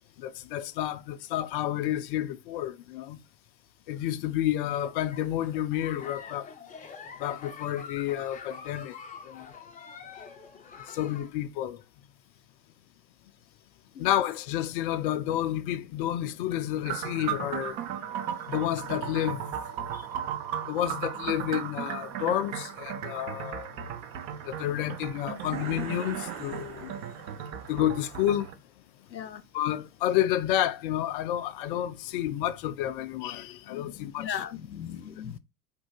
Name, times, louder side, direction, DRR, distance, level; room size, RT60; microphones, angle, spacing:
voice 1, 0.2-3.2 3.9-6.5 7.2-8.9 9.2-9.5 10.9-11.8 14.0-17.8 18.5-19.6 20.6-23.7 24.4-26.9 27.7-28.5 29.5-34.4, left 12 dB, 35° left, 0.4 m, -30 dB
Giggle, 4.6-11.3, left 6 dB, 15° left, 0.8 m, -45 dB
sound 1, 16.8-28.5, right 9 dB, 20° right, 0.4 m, -36 dB
sound 2, 25.4-27.7, right 7 dB, 55° right, 1.5 m, -42 dB
voice 2, 29.1-29.4 34.2-35.4, left 8 dB, 90° left, 0.6 m, -37 dB
4.8 x 4.6 x 2.4 m
figure-of-eight pair, 90°, 50 cm